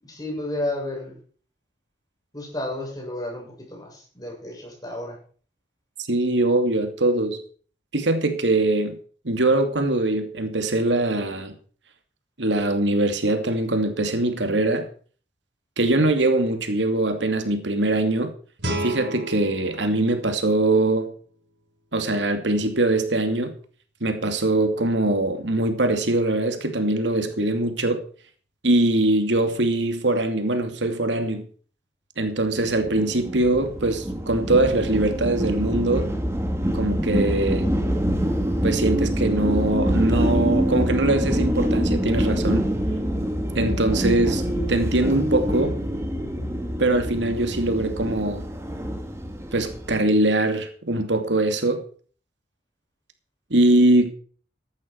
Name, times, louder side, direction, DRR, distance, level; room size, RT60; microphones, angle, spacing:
voice 1, 0.0-1.2 2.3-5.2 19.4-19.6, left 1 dB, 20° left, 7.4 m, -32 dB
voice 2, 6.1-7.4 7.9-9.0 9.2-11.5 12.4-14.9 15.8-18.3 18.8-21.1 21.9-23.5 24.0-28.0 28.6-31.4 32.2-36.1 36.7-37.7 38.6-42.7 43.5-44.4 44.7-45.8 46.8-48.4 49.5-51.8 53.5-54.1, right 2 dB, 90° right, 2.6 m, -22 dB
Guitar, 18.6-21.4, right 1 dB, 70° right, 5.1 m, -33 dB
sound 1, 32.6-50.0, equal, 15° right, 2.5 m, -25 dB
15.0 x 12.0 x 4.7 m
head